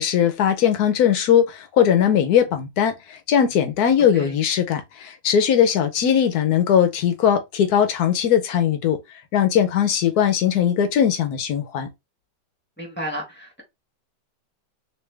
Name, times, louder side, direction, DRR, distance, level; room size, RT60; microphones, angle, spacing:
voice 1, 0.0-9.0 9.3-11.9, left 9 dB, 70° left, 1.0 m, -19 dB
voice 2, 4.0-4.3 12.8-13.6, equal, 5° left, 1.2 m, -33 dB
3.2 x 3.2 x 3.2 m
omnidirectional pair, 2.0 m